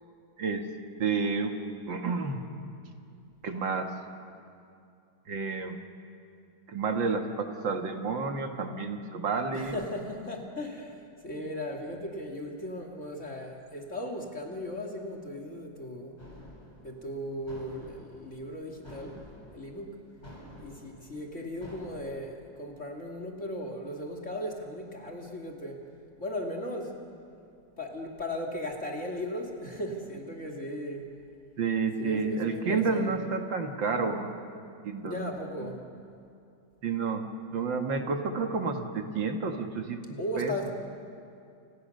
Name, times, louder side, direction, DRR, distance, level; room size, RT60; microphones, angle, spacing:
voice 1, 1.0-1.5 1.9-2.4 3.4-3.9 5.3-5.8 6.7-9.7 31.6-34.4 34.8-35.3 35.6-35.8 36.8-40.5, right 4 dB, 70° right, 5 dB, 2.4 m, -30 dB
voice 2, 9.5-16.2 16.8-19.2 19.5-20.0 20.6-25.9 26.2-27.0 27.8-31.1 32.0-33.2 35.0-35.8 40.2-40.7, left 1 dB, 40° left, 2 dB, 2.7 m, -37 dB
sound 1, 16.2-22.0, equal, 20° left, 7.0 m, -50 dB
30.0 x 28.5 x 6.6 m, 2.5 s
omnidirectional pair, 2.1 m